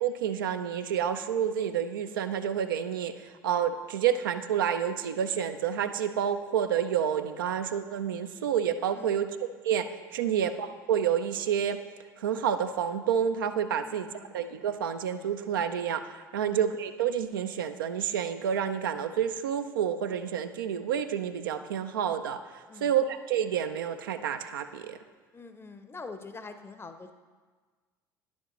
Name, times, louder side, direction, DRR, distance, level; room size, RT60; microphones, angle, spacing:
voice 1, 0.0-3.1 3.4-9.3 9.6-11.8 12.2-14.1 14.3-16.0 16.3-22.4 22.8-25.0, right 8 dB, 80° right, 8 dB, 0.4 m, -29 dB
voice 2, 8.9-9.3 10.2-10.4 13.8-14.3 16.4-16.6 22.7-22.9 25.3-27.1, left 4 dB, 20° left, 8 dB, 0.6 m, -45 dB
10.0 x 7.2 x 3.0 m, 1.5 s
figure-of-eight pair, 65°, 11 cm